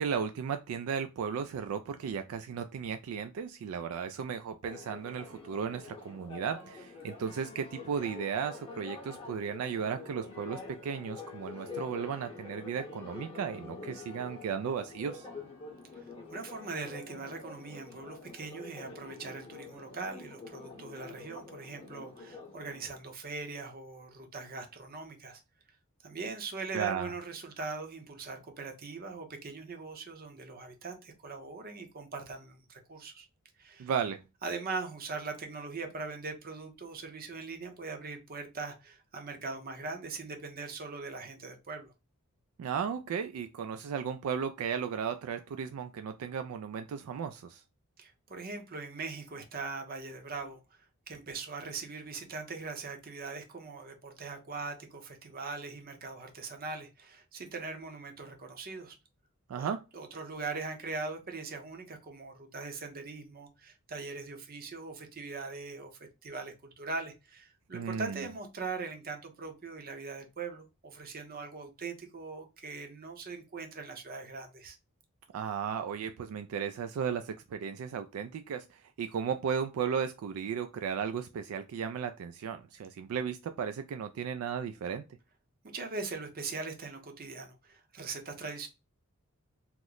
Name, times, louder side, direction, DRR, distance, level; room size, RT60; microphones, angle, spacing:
voice 1, 0.0-15.3 26.7-27.1 33.8-34.2 42.6-47.6 59.5-59.8 67.7-68.2 75.3-85.0, right 7 dB, 75° right, 0.3 m, -35 dB
Church bell, 4.6-23.0, left 4 dB, 25° left, 0.8 m, -47 dB
voice 2, 16.3-25.4 26.0-33.3 33.6-33.9 34.4-41.9 48.0-59.0 59.5-65.9 66.2-74.8 85.7-88.7, right 4 dB, 45° right, 0.7 m, -41 dB
3.0 x 2.1 x 3.7 m
head